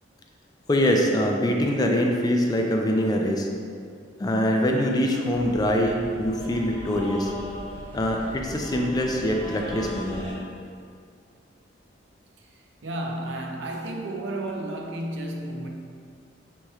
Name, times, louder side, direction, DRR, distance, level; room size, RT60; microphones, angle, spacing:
voice 1, 0.7-3.5 4.2-7.3 7.9-10.2, equal, 20° left, 1 dB, 0.3 m, -23 dB
sound 1, 5.3-10.3, equal, 25° right, 1.3 m, -39 dB
voice 2, 12.8-15.7, right 1 dB, 70° right, 1 dB, 0.5 m, -32 dB
6.1 x 3.0 x 2.4 m, 2.3 s
head